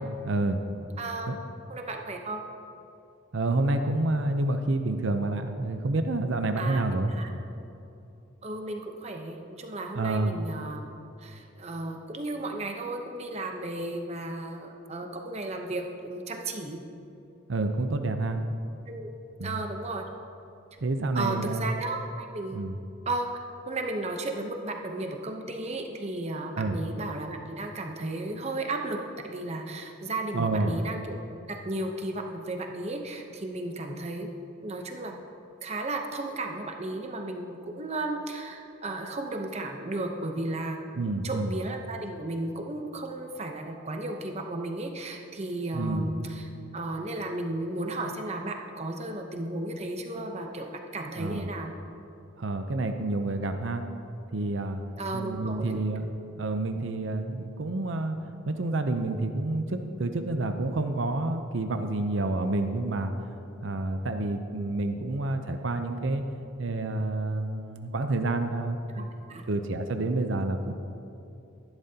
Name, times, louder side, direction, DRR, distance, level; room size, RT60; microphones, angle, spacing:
voice 1, 0.3-0.6 1.3-1.4 3.3-7.1 9.9-10.4 17.5-18.4 19.4-19.6 20.8-21.6 22.5-22.8 26.6-26.8 30.3-30.7 41.0-41.5 45.7-46.1 51.2-51.5 52.4-53.8 54.3-54.8 55.1-56.1 56.4-58.2 58.5-63.1 63.6-66.2 66.6-69.1 69.5-70.7, right 2 dB, 65° right, 7 dB, 0.6 m, -28 dB
voice 2, 1.0-1.3 1.7-2.5 6.6-6.8 7.1-7.3 8.4-10.9 11.2-16.8 18.9-19.1 19.4-20.0 21.1-22.6 23.1-31.2 31.5-34.3 34.6-35.1 35.6-40.8 41.2-51.7 55.0-55.7 68.9-69.4, right 2 dB, 30° right, 3 dB, 0.8 m, -34 dB
14.0 x 11.5 x 2.8 m, 2.8 s
head